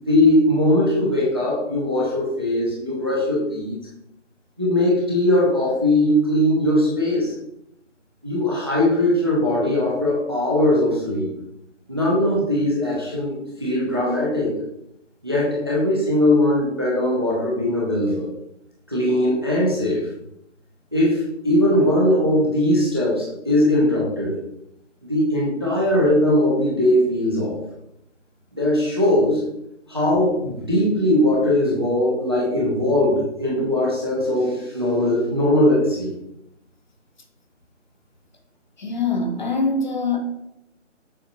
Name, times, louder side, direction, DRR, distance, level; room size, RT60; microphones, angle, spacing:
voice 1, 0.1-3.8 4.6-7.3 8.2-11.3 11.9-14.6 15.2-18.3 18.9-20.1 20.9-24.4 25.1-27.6 28.5-29.4 29.9-36.1, left 1 dB, 20° right, -4 dB, 0.5 m, -20 dB
voice 2, 38.8-40.2, left 3 dB, 40° left, 3 dB, 0.6 m, -23 dB
6.4 x 2.4 x 2.8 m, 0.81 s
hypercardioid pair, 160°, 37 cm